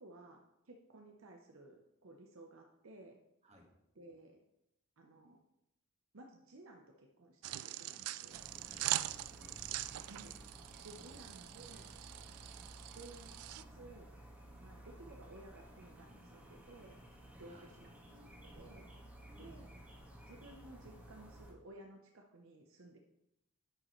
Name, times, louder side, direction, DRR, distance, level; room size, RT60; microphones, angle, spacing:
voice 1, 0.0-3.2 3.9-4.4 5.0-5.4 6.1-8.4 10.0-10.4 10.8-11.9 12.9-14.1 14.6-17.0 17.4-18.9 19.4-19.7 20.3-23.0, right 2 dB, 60° right, 2 dB, 0.8 m, -56 dB
sound 1, 7.4-13.6, right 15 dB, 80° right, 0.3 m, -42 dB
sound 2, 8.3-21.5, right 1 dB, 5° right, 1.5 m, -55 dB
voice 2, 8.4-9.6 10.9-11.2 17.4-17.7 19.3-19.6, equal, 30° right, 0 dB, 1.6 m, -61 dB
10.5 x 6.5 x 3.1 m, 0.84 s
head